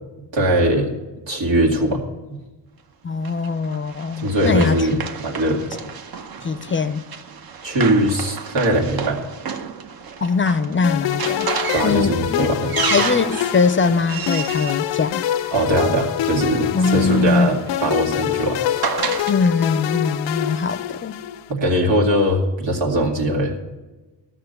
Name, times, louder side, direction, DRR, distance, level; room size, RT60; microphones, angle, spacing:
voice 1, 0.3-0.9 1.2-2.0 4.2-5.7 7.6-9.2 11.7-12.8 15.5-18.8 21.5-23.6, right 1 dB, 85° right, 2.3 m, -20 dB
voice 2, 3.0-4.9 6.4-7.1 10.2-11.5 11.8-12.5 12.8-15.2 16.7-17.6 19.3-21.2, left 4 dB, 30° left, 0.5 m, -21 dB
Run, 3.2-15.9 16.9-19.4, right 6 dB, 55° right, 0.9 m, -31 dB
sound 1, 10.8-21.5, left 13 dB, 75° left, 0.5 m, -26 dB
13.5 x 6.1 x 8.0 m
cardioid pair, 85°, 43 cm